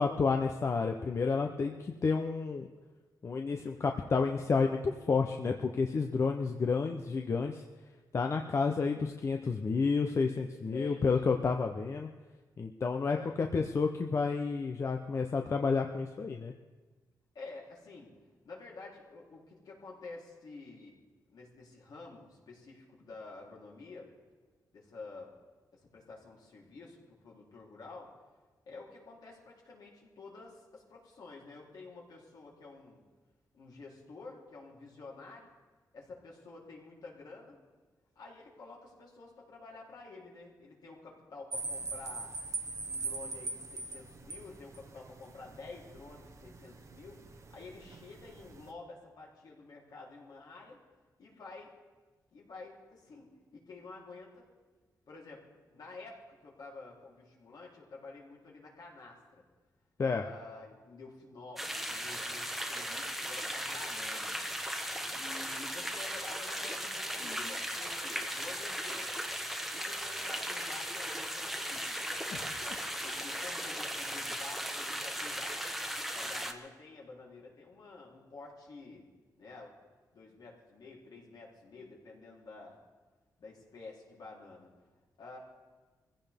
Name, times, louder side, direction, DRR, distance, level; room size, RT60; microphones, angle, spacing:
voice 1, 0.0-2.7 3.2-7.6 8.1-12.1 12.6-16.5 60.0-60.2, left 4 dB, 40° left, 4 dB, 0.7 m, -30 dB
voice 2, 10.7-11.1 11.8-11.9 13.1-13.4 17.3-18.1 18.4-21.0 21.3-24.1 24.7-25.3 25.7-28.1 28.7-33.0 33.5-35.5 35.9-37.6 38.2-42.3 42.8-50.8 51.2-51.7 52.3-54.4 55.1-59.4 60.1-64.4 65.1-69.1 69.7-72.1 73.0-75.7 76.1-79.0 79.4-79.7 80.1-82.8 83.4-84.7 85.2-85.4, left 3 dB, 65° left, -3 dB, 3.5 m, -50 dB
sound 1, 41.5-48.7, right 3 dB, 40° right, 1.0 m, -42 dB
sound 2, 61.6-76.5, equal, ahead, 1.1 m, -37 dB
sound 3, 64.0-65.1 67.1-68.6 69.4-69.5 69.7-70.3 72.3-74.2 75.1-75.8, left 5 dB, 85° left, 1.7 m, -54 dB
24.0 x 15.5 x 3.6 m, 1.3 s
wide cardioid pair, 130°, 7 cm